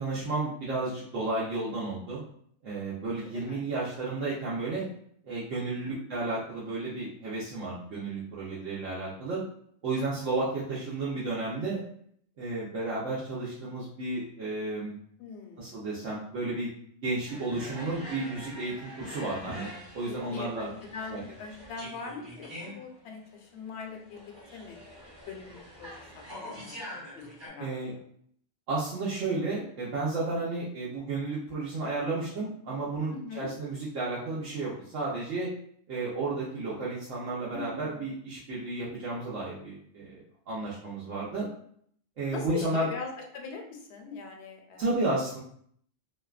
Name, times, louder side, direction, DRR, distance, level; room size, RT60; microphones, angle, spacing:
voice 1, 0.0-2.2 2.6-4.9 5.2-9.4 9.8-11.8 12.4-15.0 15.6-16.7 17.0-20.7 21.1-21.2 27.6-27.9 28.7-35.5 35.9-41.5 42.2-42.9 44.8-45.4, right 2 dB, 80° right, -8 dB, 1.0 m, -32 dB
voice 2, 3.2-3.6 5.7-6.0 15.2-15.7 20.1-24.8 25.3-28.0 33.1-33.5 37.5-38.1 42.3-44.9, left 5 dB, 70° left, 3 dB, 0.8 m, -42 dB
sound 1, 17.3-27.5, equal, 25° right, 0.8 m, -45 dB
2.6 x 2.2 x 2.3 m, 0.63 s
omnidirectional pair, 1.3 m